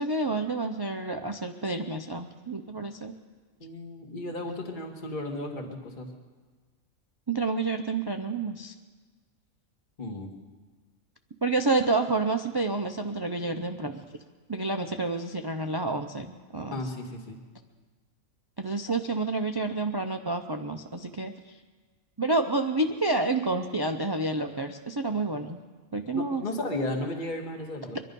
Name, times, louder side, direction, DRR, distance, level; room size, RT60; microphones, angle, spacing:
voice 1, 0.0-3.1 7.3-8.7 11.4-14.0 14.5-16.8 18.6-21.5 22.2-25.6 25.9-26.4, right 3 dB, 35° right, 6 dB, 0.4 m, -29 dB
voice 2, 3.6-6.1 10.0-10.3 16.7-17.4 26.1-28.0, left 1 dB, 35° left, 1 dB, 1.8 m, -34 dB
24.0 x 11.0 x 5.4 m, 1.4 s
omnidirectional pair, 1.4 m